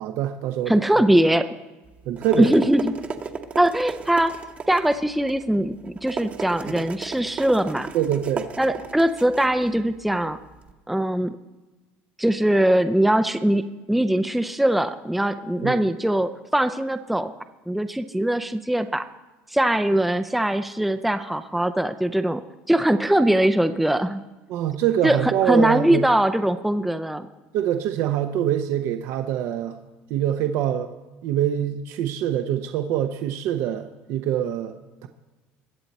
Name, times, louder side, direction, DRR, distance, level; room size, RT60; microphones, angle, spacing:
voice 1, 0.0-0.7 2.1-2.5 6.7-6.8 7.9-8.5 15.6-15.8 24.5-26.0 27.5-29.8 30.1-30.9 31.2-35.1, right 10 dB, 65° right, 6 dB, 0.7 m, -24 dB
voice 2, 0.7-1.5 2.4-3.0 3.6-4.3 4.7-7.9 8.6-10.4 10.9-11.4 12.2-17.3 17.7-19.1 19.5-22.4 22.7-24.2 25.0-27.3, right 1 dB, ahead, 8 dB, 0.5 m, -21 dB
sound 1, 1.8-10.7, right 5 dB, 30° right, 1.0 m, -36 dB
21.5 x 7.7 x 4.2 m, 1.2 s
cardioid pair, 120°, 5 cm